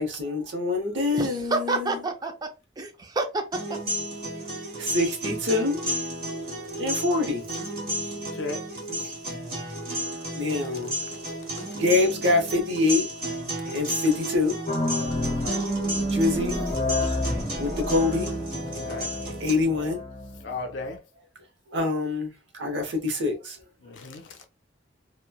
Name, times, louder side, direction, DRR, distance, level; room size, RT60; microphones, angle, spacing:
voice 1, 0.0-2.0 4.8-5.8 6.8-7.4 10.3-10.9 11.7-13.1 13.7-14.6 16.0-16.6 17.6-18.3 19.4-20.0 21.7-22.3 22.6-23.6, left 3 dB, 65° right, 0.8 m, -25 dB
voice 2, 1.1-2.5 2.8-3.8 8.0-8.1, right 3 dB, 20° right, 0.4 m, -29 dB
sound 1, 3.5-19.5, right 1 dB, 50° right, 1.3 m, -33 dB
voice 3, 13.5-13.9 15.4-15.6 18.7-19.1 20.4-21.0 23.8-24.5, left 3 dB, 70° left, 0.6 m, -36 dB
sound 2, 14.7-21.0, left 1 dB, 30° left, 0.7 m, -29 dB
3.0 x 2.1 x 2.2 m
head